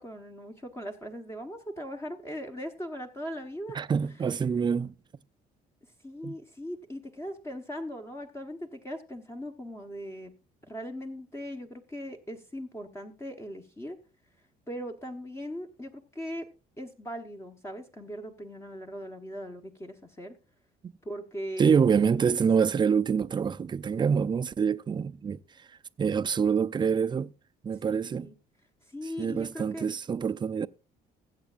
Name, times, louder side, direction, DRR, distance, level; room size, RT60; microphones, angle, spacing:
voice 1, 0.0-3.8 6.0-10.3 10.6-14.0 14.7-16.5 16.8-20.4 21.0-21.8 27.8-28.3 28.8-29.9, equal, 15° left, 1.2 m, -39 dB
voice 2, 3.7-5.0 6.2-6.3 20.8-20.9 21.6-25.4 26.0-27.3 27.6-28.3 29.2-30.7, right 6 dB, 25° right, 0.5 m, -26 dB
20.5 x 8.2 x 2.5 m
cardioid pair, 110°, 17 cm